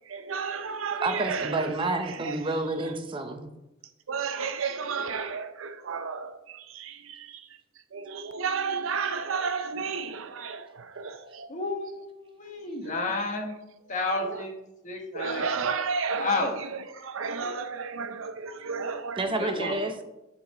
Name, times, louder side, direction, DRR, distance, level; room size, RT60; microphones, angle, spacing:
voice 1, 0.1-1.7 2.2-2.4 4.1-6.4 6.7-7.3 7.9-11.5 15.1-16.4 17.0-19.2, right 5 dB, 80° right, 0.6 m, -32 dB
voice 2, 1.0-3.5 19.2-19.9, right 2 dB, 25° right, 0.6 m, -29 dB
voice 3, 11.5-13.5 13.9-14.5 14.8-15.5 16.2-16.6 19.3-19.7, left 3 dB, 40° left, 1.2 m, -31 dB
7.2 x 4.0 x 5.4 m
head